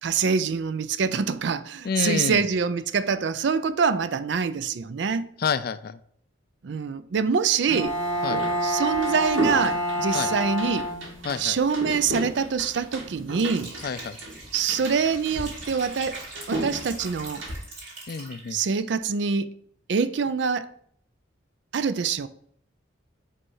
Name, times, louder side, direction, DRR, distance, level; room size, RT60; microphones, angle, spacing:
voice 1, 0.0-5.3 6.6-8.0 8.6-10.9 11.4-13.7 14.5-17.4 18.5-19.6 19.9-20.7 21.7-22.3, right 5 dB, 65° right, 0.4 m, -25 dB
voice 2, 1.8-2.5 5.4-6.0 8.2-8.4 10.1-10.3 11.2-11.6 13.8-14.2 18.1-18.6, left 6 dB, 50° left, 0.3 m, -28 dB
Bowed string instrument, 7.7-11.4, equal, 15° left, 1.8 m, -27 dB
sound 1, 7.8-17.5, right 1 dB, 85° right, 1.8 m, -35 dB
Liquid, 13.3-18.8, right 2 dB, 45° right, 2.7 m, -42 dB
5.3 x 3.3 x 5.5 m
head